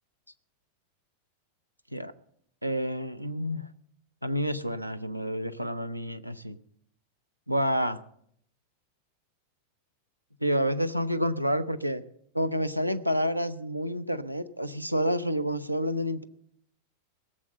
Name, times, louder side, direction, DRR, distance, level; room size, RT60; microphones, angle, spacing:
voice 1, 2.6-3.7 4.2-6.6 7.5-8.0 10.4-12.0 12.3-16.2, equal, 90° right, 12 dB, 0.6 m, -29 dB
17.5 x 7.4 x 7.7 m, 0.68 s
figure-of-eight pair, 90°, 0 cm